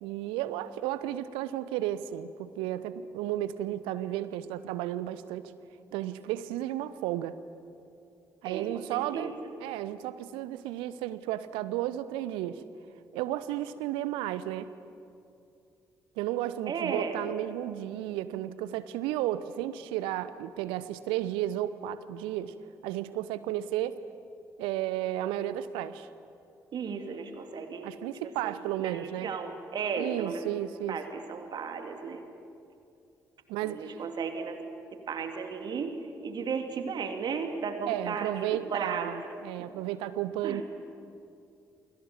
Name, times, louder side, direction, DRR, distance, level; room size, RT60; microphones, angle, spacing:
voice 1, 0.0-5.5 5.9-7.3 8.4-9.3 9.6-12.6 13.1-14.7 16.2-22.5 22.8-24.0 24.6-26.1 27.8-29.3 30.0-31.0 33.5-34.0 37.9-40.6, right 13 dB, 65° right, 15 dB, 0.9 m, -33 dB
voice 2, 8.4-9.5 16.7-17.2 26.7-28.0 28.2-30.4 30.9-32.2 33.6-34.6 34.9-36.0 36.2-39.1 40.4-40.6, right 5 dB, 50° right, 6 dB, 2.6 m, -35 dB
28.0 x 24.0 x 7.2 m, 2.6 s
figure-of-eight pair, 45°, 9 cm